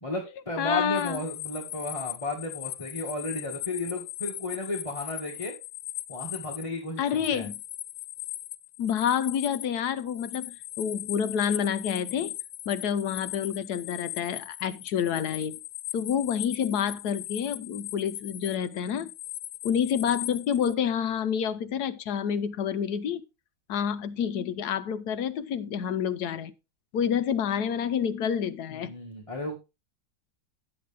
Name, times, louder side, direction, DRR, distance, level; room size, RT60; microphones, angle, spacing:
voice 1, 0.0-5.5 6.1-7.0 7.3-7.5 28.7-29.6, left 1 dB, 20° left, 1.6 m, -33 dB
voice 2, 0.6-1.2 7.0-7.6 8.8-12.3 12.7-15.6 15.9-19.1 19.6-23.2 23.7-26.5 26.9-28.9, left 8 dB, 70° left, 1.1 m, -28 dB
sound 1, 1.0-20.7, left 14 dB, 90° left, 1.4 m, -39 dB
10.0 x 8.0 x 3.4 m
omnidirectional pair, 2.0 m